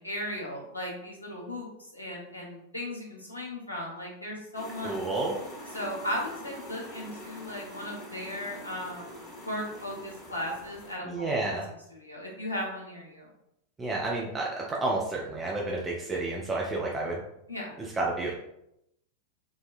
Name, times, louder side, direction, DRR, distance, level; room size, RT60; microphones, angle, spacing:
voice 1, 0.0-5.0 5.7-9.2 9.4-13.3 17.5-17.7, left 1 dB, 80° left, -2 dB, 0.9 m, -37 dB
sound 1, 4.5-10.9, left 1 dB, 20° left, 1.4 m, -44 dB
voice 2, 4.8-5.3 11.0-11.6 13.8-17.2 18.0-18.3, right 2 dB, 15° right, -3 dB, 0.5 m, -30 dB
4.0 x 2.3 x 2.5 m, 0.81 s
figure-of-eight pair, 90°, 0 cm